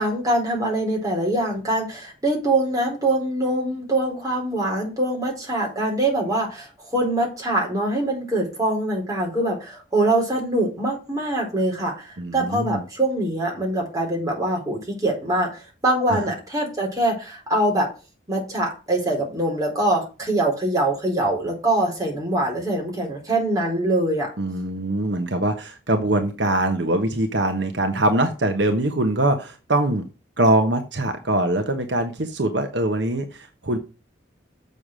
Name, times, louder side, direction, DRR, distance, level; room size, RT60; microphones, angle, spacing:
voice 1, 0.0-17.9 18.3-24.3, right 1 dB, 20° right, -1 dB, 4.3 m, -23 dB
voice 2, 12.2-12.8 16.1-16.3 24.4-30.1 30.4-33.8, right 1 dB, 65° right, 6 dB, 1.2 m, -23 dB
7.2 x 6.7 x 6.3 m, 0.32 s
head